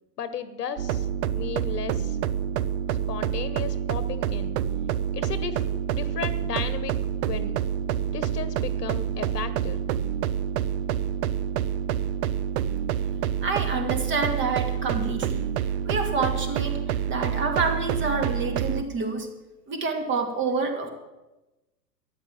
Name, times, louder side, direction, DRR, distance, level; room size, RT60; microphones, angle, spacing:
voice 1, 0.2-1.1 1.3-2.2 3.1-4.6 5.1-5.6 5.9-6.9 7.3-7.6 8.1-9.8, left 7 dB, 70° left, 12 dB, 1.3 m, -34 dB
sound 1, 0.8-18.8, right 9 dB, 45° right, 0.7 m, -27 dB
voice 2, 13.4-15.5 15.8-19.3 19.7-20.9, right 4 dB, 25° right, 5 dB, 2.4 m, -28 dB
13.0 x 9.4 x 7.4 m, 1.1 s
hypercardioid pair, 110°, 49 cm